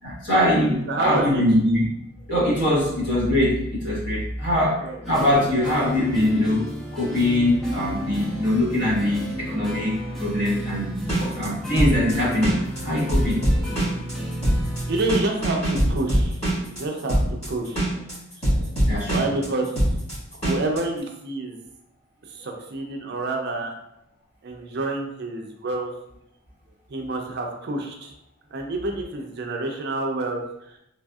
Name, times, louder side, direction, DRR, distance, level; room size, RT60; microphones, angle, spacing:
voice 1, 0.0-1.9 2.3-4.8 5.1-6.6 6.9-10.9 11.2-13.4 14.2-14.3 18.9-19.2, left 1 dB, 60° left, -6 dB, 1.1 m, -22 dB
voice 2, 0.9-1.4 4.8-5.0 14.9-16.4 16.7-17.9 18.4-18.7 19.1-19.7 20.4-21.6 22.3-23.8 24.4-25.9 26.9-28.1 28.5-30.4, right 2 dB, 55° right, 2 dB, 0.4 m, -28 dB
sound 1, 5.0-15.0, equal, ahead, 0.5 m, -33 dB
sound 2, 11.0-20.8, right 1 dB, 30° left, 1.5 m, -23 dB
3.3 x 2.5 x 2.3 m, 0.79 s
head